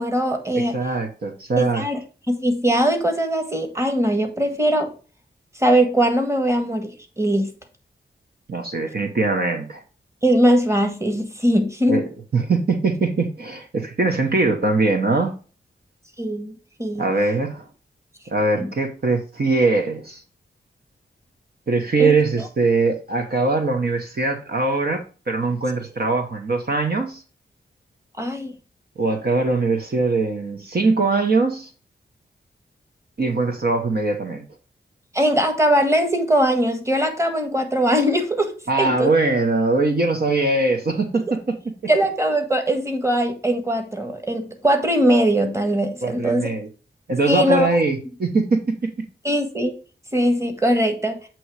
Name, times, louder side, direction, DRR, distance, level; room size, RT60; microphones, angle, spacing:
voice 1, 0.0-0.8 1.6-2.0 2.3-4.9 5.6-7.5 10.2-12.0 16.2-17.1 18.6-18.7 22.0-22.1 28.2-28.5 35.1-39.1 41.9-46.5 47.3-47.7 49.2-49.7 50.1-51.2, equal, 15° right, 6 dB, 1.5 m, -20 dB
voice 2, 0.5-1.8 8.5-9.8 11.9-12.0 12.3-15.3 17.0-17.6 18.3-20.2 21.7-27.2 29.0-31.7 33.2-34.4 38.7-41.4 46.0-46.7 47.1-48.6, right 3 dB, 55° right, 3 dB, 1.1 m, -21 dB
7.8 x 3.1 x 4.8 m, 0.36 s
wide cardioid pair, 80°, 19 cm